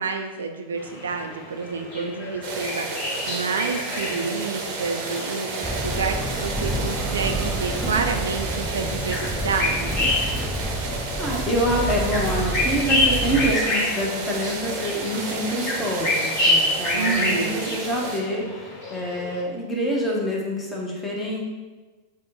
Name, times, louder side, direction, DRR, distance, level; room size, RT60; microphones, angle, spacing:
voice 1, 0.0-2.9 3.3-9.9 16.9-17.7, right 5 dB, 70° right, 5 dB, 0.3 m, -29 dB
sound 1, 0.8-19.4, left 2 dB, 40° left, 1.2 m, -29 dB
sound 2, 2.4-18.2, right 3 dB, 45° right, 0.7 m, -32 dB
Motor vehicle (road), 5.6-13.6, right 1 dB, ahead, 0.4 m, -29 dB
voice 2, 11.2-21.4, equal, 15° left, -2 dB, 1.0 m, -26 dB
4.8 x 2.2 x 4.2 m, 1.3 s
figure-of-eight pair, 90°, 0 cm